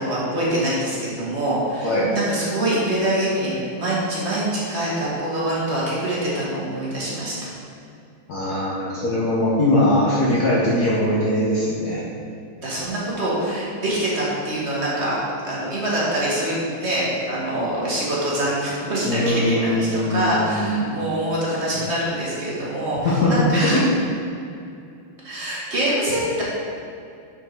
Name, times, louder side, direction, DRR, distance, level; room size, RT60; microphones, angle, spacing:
voice 1, 0.0-7.5 12.6-15.2 15.4-23.8 25.2-26.4, right 1 dB, 35° right, -7 dB, 1.6 m, -24 dB
voice 2, 8.3-12.0 19.0-21.0 23.0-23.8, left 1 dB, 55° left, -7 dB, 1.3 m, -21 dB
5.6 x 5.5 x 4.5 m, 2.5 s
omnidirectional pair, 2.3 m